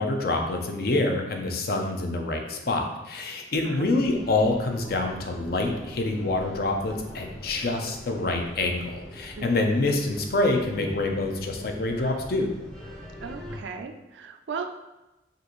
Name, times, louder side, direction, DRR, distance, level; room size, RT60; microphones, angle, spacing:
voice 1, 0.0-12.5, left 2 dB, 55° left, 3 dB, 0.5 m, -26 dB
sound 1, 3.9-13.6, equal, 5° left, 0.5 m, -43 dB
voice 2, 13.2-14.7, right 5 dB, 75° right, 6 dB, 0.4 m, -37 dB
5.1 x 2.5 x 3.0 m, 1.0 s
head